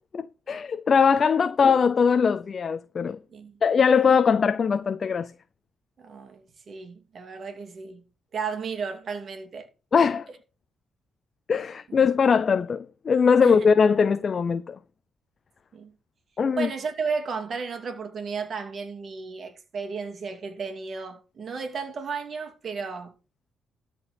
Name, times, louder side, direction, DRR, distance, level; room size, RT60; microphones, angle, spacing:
voice 1, 0.1-3.2 3.6-5.3 9.9-10.3 11.5-14.8 16.4-16.7, left 6 dB, 45° left, 0.6 m, -21 dB
voice 2, 6.0-8.1 8.3-9.7 13.4-13.7 15.7-15.9 16.6-23.1, right 5 dB, 50° right, 2.5 m, -34 dB
13.0 x 4.6 x 6.9 m
cardioid pair, 90°, 0 cm